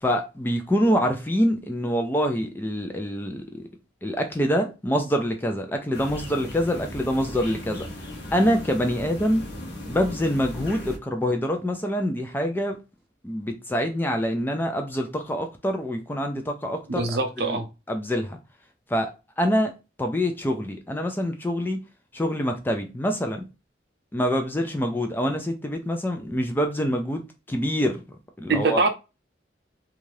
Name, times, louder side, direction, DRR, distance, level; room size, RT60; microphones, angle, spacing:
voice 1, 0.0-3.7 4.0-7.9 8.3-9.4 9.9-12.8 13.2-17.1 17.4-17.6 17.9-18.4 18.9-19.1 19.4-19.7 20.0-21.8 22.1-23.5 24.1-27.2 27.5-28.8, equal, 10° left, 0.3 m, -25 dB
sound 1, 5.9-11.0, left 1 dB, 60° left, 0.8 m, -37 dB
voice 2, 17.0-17.7 28.5-28.9, right 3 dB, 60° right, 0.5 m, -23 dB
2.7 x 2.4 x 3.1 m
head